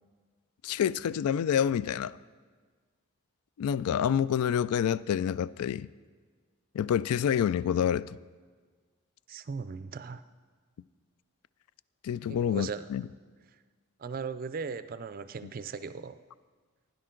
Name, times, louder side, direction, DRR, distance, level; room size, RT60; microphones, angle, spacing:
voice 1, 0.6-2.2 3.6-5.9 6.7-8.1 12.0-13.0, left 8 dB, 85° left, 19 dB, 0.3 m, -27 dB
voice 2, 9.3-10.2 12.3-12.9 14.0-16.2, right 5 dB, 40° right, 13 dB, 0.4 m, -38 dB
17.0 x 10.0 x 3.8 m, 1.5 s
head